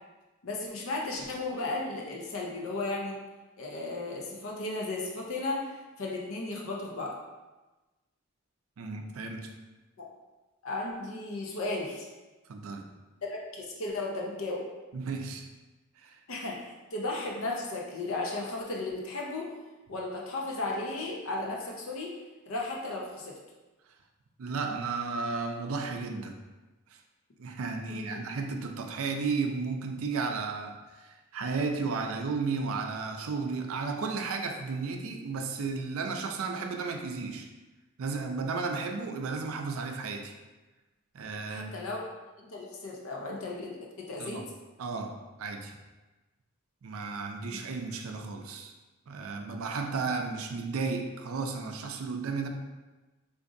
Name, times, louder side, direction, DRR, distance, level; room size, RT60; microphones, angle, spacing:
voice 1, 0.4-3.2 3.6-7.1 10.0-10.1 10.6-12.1 13.2-14.6 16.3-19.5 19.9-22.2 22.5-23.4 27.9-28.2 41.5-42.0 42.4-44.4, left 2 dB, 70° left, -2 dB, 0.6 m, -35 dB
voice 2, 8.8-9.5 12.5-12.8 14.9-15.5 16.0-16.2 24.4-26.4 27.4-37.5 38.0-40.3 41.1-41.9 44.2-44.4 44.8-45.8 46.8-48.7 49.1-52.5, right 4 dB, 75° right, 4 dB, 0.4 m, -33 dB
4.8 x 2.5 x 2.5 m, 1.2 s
head